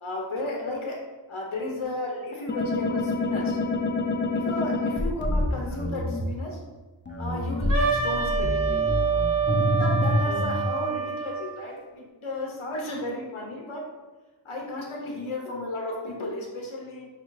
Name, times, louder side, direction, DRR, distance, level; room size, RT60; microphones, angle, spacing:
voice 1, 0.0-1.0 1.3-3.6 4.3-6.7 7.2-8.9 9.8-13.8 14.4-17.1, left 1 dB, 85° left, -1 dB, 0.7 m, -34 dB
sound 1, 2.5-6.2 7.1-10.6, left 2 dB, 25° left, 0.5 m, -27 dB
Wind instrument woodwind instrument, 7.7-11.5, right 6 dB, 45° right, 0.8 m, -26 dB
4.7 x 2.4 x 3.1 m, 1.2 s
wide cardioid pair, 40°, 48 cm